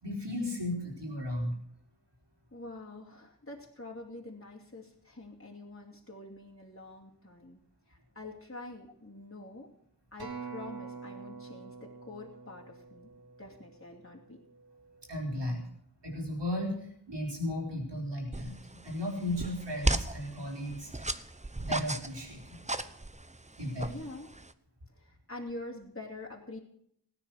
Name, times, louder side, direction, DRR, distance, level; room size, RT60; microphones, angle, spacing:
voice 1, 0.0-1.5 15.1-15.6 16.0-18.5 18.8-21.1 21.6-22.6 23.6-24.0, left 1 dB, 85° right, -1 dB, 4.7 m, -35 dB
voice 2, 2.5-7.6 7.9-9.7 10.1-13.1 13.4-14.4 23.9-24.3 24.9-26.6, left 2 dB, 30° left, -2 dB, 2.8 m, -46 dB
Acoustic guitar, 10.2-14.6 15.3-15.4, right 5 dB, 65° right, 3.6 m, -46 dB
sound 1, 18.3-24.5, right 2 dB, 15° right, 0.8 m, -36 dB
17.5 x 9.8 x 6.4 m, 0.69 s
wide cardioid pair, 40°, 41 cm